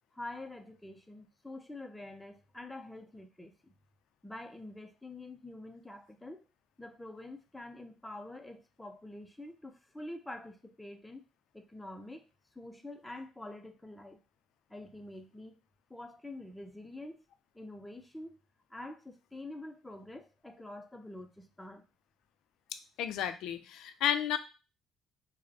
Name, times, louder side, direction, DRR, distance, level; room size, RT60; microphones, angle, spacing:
voice 1, 0.1-3.7 4.2-6.4 6.8-11.2 11.5-12.2 12.6-14.2 14.7-15.6 15.9-17.2 17.5-18.4 18.7-21.9, left 1 dB, 5° left, 5 dB, 0.4 m, -46 dB
voice 2, 23.0-24.4, left 10 dB, 75° left, 9 dB, 0.4 m, -32 dB
5.0 x 2.0 x 2.7 m, 0.31 s
cardioid pair, 175°, 0 cm